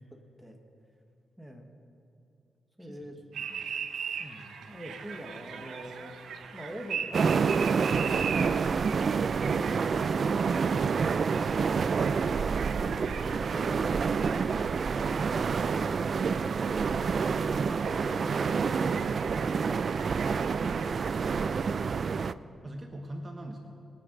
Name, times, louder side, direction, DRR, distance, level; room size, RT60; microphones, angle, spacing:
voice 1, 1.4-1.7 2.8-3.2 4.2-6.1 6.5-8.8 12.9-14.0, equal, 5° right, 2 dB, 1.3 m, -46 dB
sound 1, 3.3-20.9, right 6 dB, 90° right, 0.9 m, -41 dB
sound 2, 7.1-22.3, right 5 dB, 50° right, 0.3 m, -28 dB
voice 2, 22.6-23.8, right 1 dB, 25° right, 3 dB, 1.1 m, -44 dB
22.0 x 9.2 x 5.3 m, 2.8 s
wide cardioid pair, 130°, 0 cm